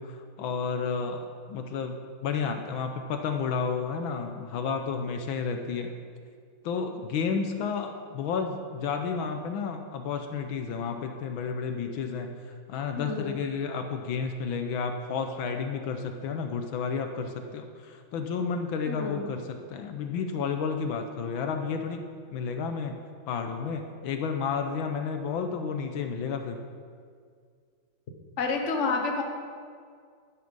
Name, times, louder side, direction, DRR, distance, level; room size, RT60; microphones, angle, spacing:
voice 1, 0.0-2.0 2.2-5.9 6.6-22.0 22.3-22.9 23.3-26.6, left 5 dB, 75° left, 6 dB, 1.5 m, -31 dB
voice 2, 13.0-13.4 18.9-19.3 28.4-29.2, left 4 dB, 40° left, 3 dB, 1.4 m, -29 dB
11.5 x 10.5 x 5.4 m, 2.1 s
omnidirectional pair, 2.2 m